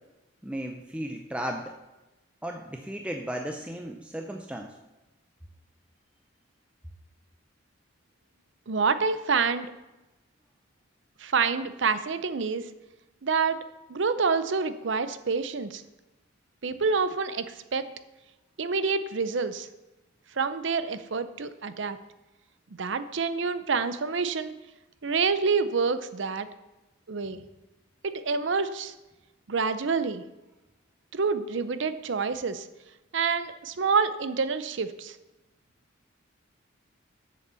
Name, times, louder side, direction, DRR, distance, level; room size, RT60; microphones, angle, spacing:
voice 1, 0.4-1.7 2.4-4.7, right 1 dB, 5° right, 3 dB, 0.5 m, -35 dB
voice 2, 8.7-9.7 11.2-12.6 13.2-13.6 13.9-15.8 16.6-17.9 18.6-19.7 20.4-22.0 22.8-24.5 25.0-26.5 27.1-27.4 28.0-28.9 29.5-30.2 31.1-32.7 33.1-35.2, right 5 dB, 65° right, 12 dB, 0.6 m, -27 dB
7.3 x 6.8 x 6.9 m, 1.0 s
head